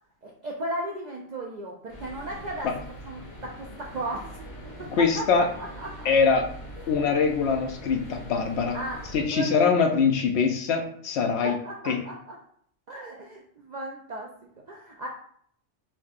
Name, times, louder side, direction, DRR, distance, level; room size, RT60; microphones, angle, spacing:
voice 1, 0.2-2.7 3.0-4.3 4.8-4.9 5.2-5.9 8.7-9.0 9.3-9.7 11.4-12.4 12.9-14.3 14.7-15.1, right 1 dB, 65° right, -1 dB, 0.4 m, -35 dB
sound 1, 1.9-9.3, equal, 35° left, 1.0 m, -42 dB
voice 2, 5.0-5.5 6.0-6.4 6.9-8.8 9.1-11.5 11.9-12.0, left 5 dB, 70° left, 3 dB, 0.8 m, -23 dB
4.5 x 2.7 x 2.4 m, 0.62 s
omnidirectional pair, 1.2 m